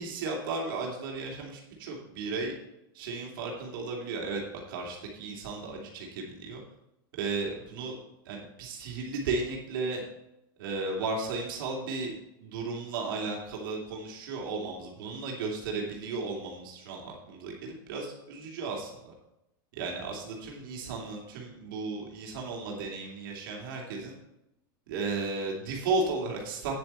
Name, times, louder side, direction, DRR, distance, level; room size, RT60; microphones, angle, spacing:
voice 1, 0.0-2.5 2.9-4.4 4.7-6.6 7.1-8.0 8.2-10.0 10.6-19.1 19.7-24.1 24.9-26.7, right 3 dB, 70° right, -1 dB, 2.9 m, -34 dB
9.6 x 7.8 x 4.4 m, 0.88 s
supercardioid pair, 135°, 12 cm